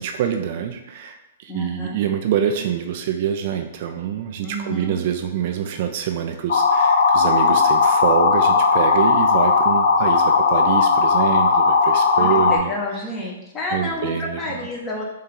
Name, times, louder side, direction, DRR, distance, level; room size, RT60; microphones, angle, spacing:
voice 1, 0.0-13.0 13.7-14.7, right 9 dB, 50° right, 5 dB, 0.4 m, -25 dB
voice 2, 1.5-2.0 4.4-5.0 12.2-15.0, left 1 dB, 20° left, -3 dB, 1.1 m, -30 dB
sound 1, 6.5-12.6, left 4 dB, 70° left, 0.4 m, -17 dB
4.4 x 2.7 x 3.7 m, 0.96 s
hypercardioid pair, 120°, 0 cm